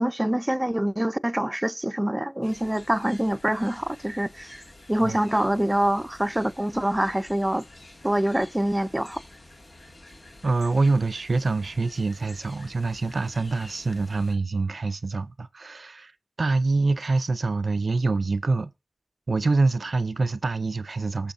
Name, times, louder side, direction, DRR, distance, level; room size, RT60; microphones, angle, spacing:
voice 1, 0.0-4.6 4.9-7.6 8.0-9.2, right 1 dB, 15° right, 0.5 m, -25 dB
sound 1, 2.4-14.4, left 1 dB, 75° left, 2.1 m, -49 dB
voice 2, 10.4-16.1 16.4-18.7 19.3-21.3, right 3 dB, 80° right, 0.4 m, -25 dB
20.0 x 7.0 x 2.6 m
cardioid pair, 40°, 0 cm